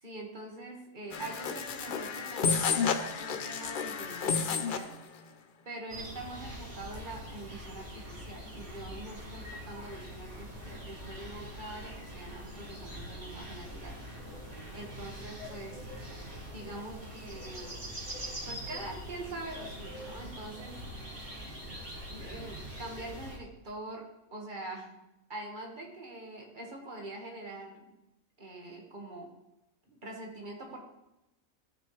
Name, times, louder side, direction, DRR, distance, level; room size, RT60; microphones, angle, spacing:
voice 1, 0.0-5.0 5.7-14.4 14.7-15.9 16.5-17.8 18.5-20.8 22.1-25.0 25.3-27.9 28.4-29.3 29.9-30.8, right 2 dB, 35° right, 0 dB, 1.7 m, -44 dB
sound 1, 1.1-4.9, left 6 dB, 55° left, 0.5 m, -31 dB
sound 2, 5.9-23.4, equal, 50° right, 3.0 m, -43 dB
13.0 x 6.1 x 3.2 m, 0.90 s
omnidirectional pair, 1.5 m